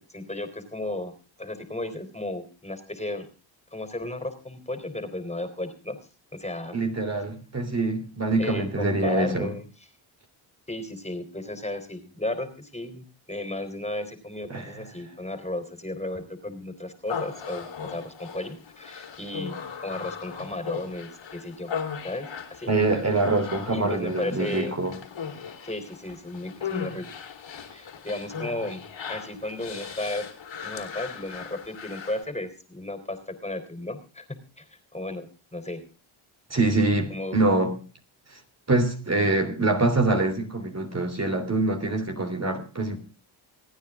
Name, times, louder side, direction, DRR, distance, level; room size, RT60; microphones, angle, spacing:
voice 1, 0.1-1.1 1.4-3.3 3.7-6.0 6.3-6.8 7.1-7.2 8.4-9.7 10.7-21.7 22.0-22.7 23.7-24.7 25.6-27.0 27.7-28.8 29.1-30.3 30.6-34.3 34.6-34.7 34.9-35.8 37.1-37.4, left 1 dB, 15° left, 3.8 m, -34 dB
voice 2, 6.7-9.5 14.5-14.9 22.7-25.0 36.5-37.8 38.3-38.4 38.7-43.0, right 2 dB, 30° right, 3.2 m, -25 dB
Human voice, 17.1-32.2, left 6 dB, 65° left, 3.9 m, -38 dB
27.0 x 9.6 x 3.7 m
supercardioid pair, 60°, 50 cm